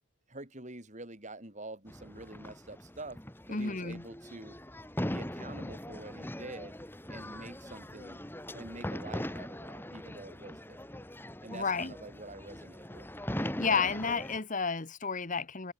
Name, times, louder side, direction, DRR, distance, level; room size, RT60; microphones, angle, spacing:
voice 1, 0.3-3.2 3.5-4.6 5.1-6.7 7.1-8.2 8.5-11.0 11.4-13.1, right 2 dB, 35° right, 4.2 m, -46 dB
sound 1, 1.9-14.4, left 1 dB, 10° left, 3.2 m, -41 dB
voice 2, 3.5-4.0 11.5-11.9 13.4-15.7, left 5 dB, 40° left, 1.3 m, -31 dB
head